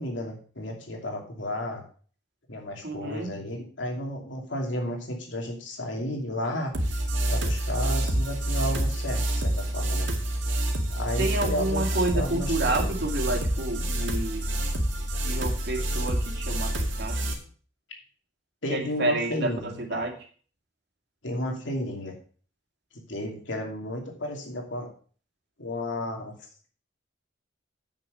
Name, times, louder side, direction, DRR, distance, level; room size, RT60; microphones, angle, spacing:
voice 1, 0.0-1.8 2.5-6.7 7.3-10.1 10.9-11.8 12.1-12.9 18.6-20.0 21.2-22.1 23.1-24.9 25.6-26.3, left 1 dB, 80° left, 1 dB, 2.7 m, -33 dB
voice 2, 2.8-3.3 11.2-14.4 15.2-17.2 18.7-20.1, right 2 dB, 65° right, 1 dB, 2.4 m, -29 dB
sound 1, 6.7-17.3, right 1 dB, 90° right, 2.2 m, -27 dB
8.9 x 6.3 x 6.5 m, 0.43 s
head